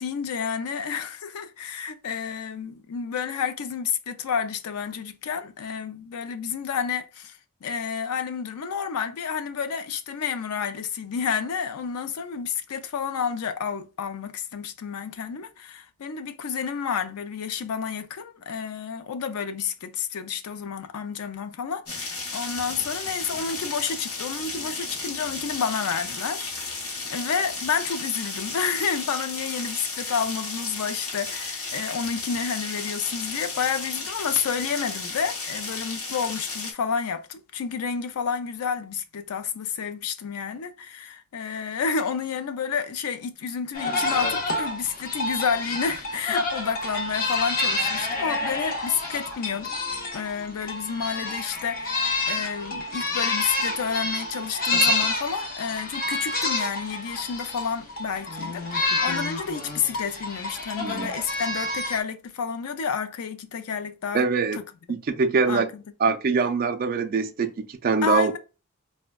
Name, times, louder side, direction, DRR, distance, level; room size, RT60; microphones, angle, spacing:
voice 1, 0.0-26.7 27.1-49.7 50.1-64.3 64.6-65.0 65.5-65.8 68.0-68.4, left 6 dB, 85° left, 0.4 m, -30 dB
sound 1, 21.9-36.7, left 3 dB, 70° left, 0.9 m, -34 dB
sound 2, 43.7-62.0, left 2 dB, 40° left, 0.6 m, -28 dB
voice 2, 60.8-61.1 64.1-64.6 64.9-65.7 66.0-68.4, right 4 dB, 40° right, 0.4 m, -23 dB
4.2 x 2.1 x 2.2 m
head